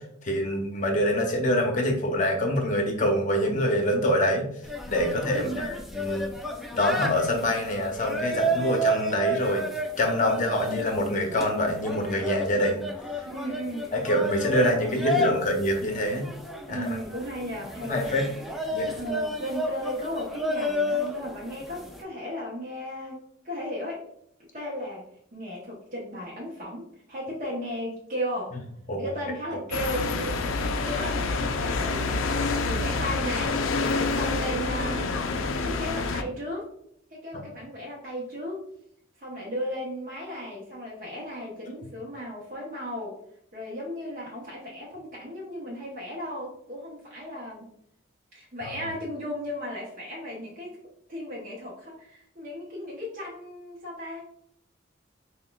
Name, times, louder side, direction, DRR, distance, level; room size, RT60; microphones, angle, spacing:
voice 1, 0.2-4.5 4.9-6.3 6.7-9.6 10.0-12.8 13.9-16.3 16.7-17.0 17.9-18.3 18.7-18.9 28.9-29.1 48.6-48.7, equal, 40° left, 3 dB, 0.7 m, -25 dB
sound 1, 4.6-22.0, equal, ahead, 0.4 m, -32 dB
voice 2, 5.3-5.8 13.2-14.1 14.7-15.4 16.7-18.6 18.9-24.0 24.5-25.0 25.3-28.6 29.0-30.4 30.8-32.2 32.7-33.6 34.1-35.3 35.6-36.7 37.1-38.6 39.2-43.1 43.5-47.7 48.3-50.8 51.1-54.2, equal, 40° right, -5 dB, 0.8 m, -35 dB
sound 2, 29.7-36.2, left 3 dB, 75° left, 0.4 m, -27 dB
5.7 x 2.2 x 2.3 m, 0.71 s
head